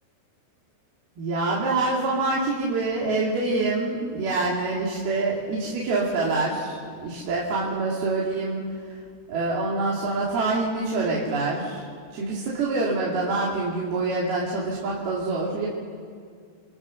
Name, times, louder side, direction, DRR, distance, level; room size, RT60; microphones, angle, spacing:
voice 1, 1.2-9.0 9.3-11.8 12.1-15.7, right 3 dB, 55° right, -5 dB, 4.3 m, -26 dB
28.0 x 26.0 x 6.6 m, 2.1 s
omnidirectional pair, 5.8 m